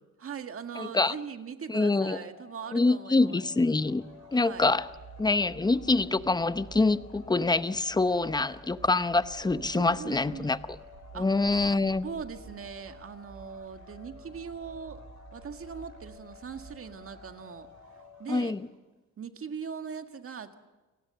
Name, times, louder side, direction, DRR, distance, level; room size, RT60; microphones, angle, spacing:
voice 1, 0.2-3.4 4.3-4.7 9.7-10.6 11.1-11.3 12.0-15.0 15.3-17.7 18.2-18.6 19.2-20.5, right 6 dB, 45° right, 7 dB, 1.9 m, -40 dB
voice 2, 0.8-1.1 1.7-2.2 2.7-4.0 4.3-4.9 5.2-10.6 11.1-12.0 18.3-18.7, left 3 dB, 15° left, 14 dB, 0.8 m, -25 dB
sound 1, 1.7-18.3, left 7 dB, 85° left, 8.0 m, -53 dB
sound 2, 3.1-18.8, right 4 dB, 70° right, 7.2 m, -51 dB
29.0 x 19.0 x 6.9 m, 1.2 s
cardioid pair, 90°, 30 cm